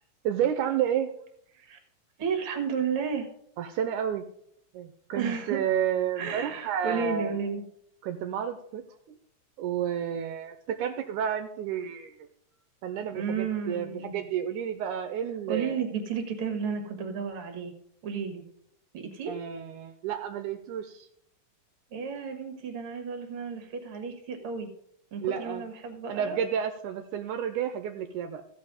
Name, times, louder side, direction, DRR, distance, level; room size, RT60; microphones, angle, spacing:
voice 1, 0.3-1.1 3.6-4.3 4.7-7.4 8.0-8.8 9.1-9.2 9.6-12.1 12.8-15.8 19.3-21.1 25.2-25.6 26.1-28.4, right 9 dB, 80° right, 7 dB, 2.1 m, -31 dB
voice 2, 2.2-3.3 5.1-5.7 6.2-7.6 13.1-14.2 15.5-17.7 18.0-18.4 18.9-19.3 21.9-24.7 25.1-26.4, right 6 dB, 50° right, 6 dB, 2.1 m, -32 dB
15.0 x 5.4 x 5.1 m, 0.68 s
omnidirectional pair, 3.7 m